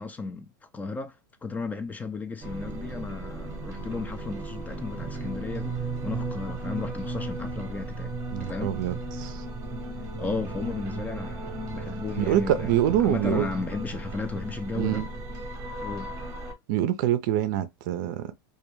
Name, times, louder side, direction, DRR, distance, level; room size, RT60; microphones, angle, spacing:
voice 1, 0.0-5.8 6.0-8.7 10.2-12.7 13.0-15.1 15.8-16.2, left 4 dB, 15° left, 0.3 m, -34 dB
sound 1, 2.4-16.5, right 2 dB, 25° right, 0.8 m, -35 dB
voice 2, 8.3-9.4 12.2-13.5 14.8-15.1 16.7-18.3, right 11 dB, 60° right, 0.4 m, -25 dB
2.2 x 2.2 x 3.0 m
hypercardioid pair, 120°, 12 cm